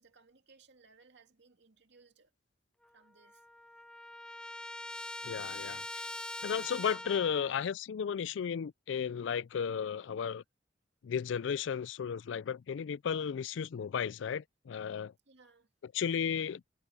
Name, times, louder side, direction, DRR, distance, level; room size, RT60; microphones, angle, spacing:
voice 1, 0.0-2.3 2.9-3.4 5.9-6.4 15.3-15.7, right 4 dB, 65° right, 2.5 m, -63 dB
Trumpet, 2.8-2.9 3.2-7.6, left 1 dB, 5° left, 0.4 m, -43 dB
voice 2, 5.2-6.1 6.4-10.4 11.0-15.1 15.9-16.6, left 7 dB, 70° left, 0.4 m, -34 dB
head